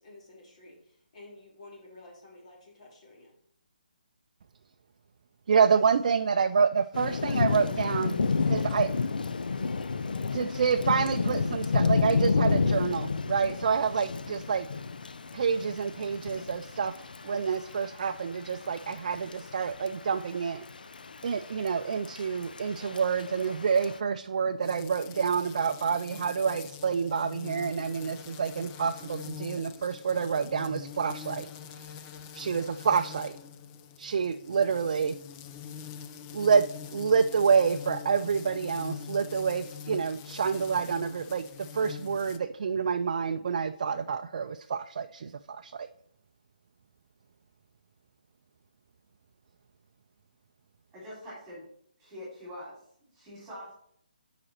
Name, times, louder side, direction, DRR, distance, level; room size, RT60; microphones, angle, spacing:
voice 1, 0.0-3.3, left 2 dB, 50° left, -2 dB, 3.0 m, -51 dB
voice 2, 5.5-8.2 8.5-8.9 10.3-14.7 15.3-17.0 17.2-20.6 21.2-31.5 32.3-33.3 34.0-35.2 36.3-45.9, right 6 dB, 55° right, 7 dB, 0.4 m, -28 dB
Thunder / Rain, 6.9-24.0, left 4 dB, 80° left, 0.5 m, -31 dB
sound 1, 24.6-42.4, left 8 dB, 20° left, 0.3 m, -44 dB
voice 3, 50.9-51.7 52.0-52.8 53.1-53.7, equal, 10° right, -8 dB, 3.3 m, -44 dB
7.7 x 5.0 x 4.3 m, 0.67 s
hypercardioid pair, 160°, 5 cm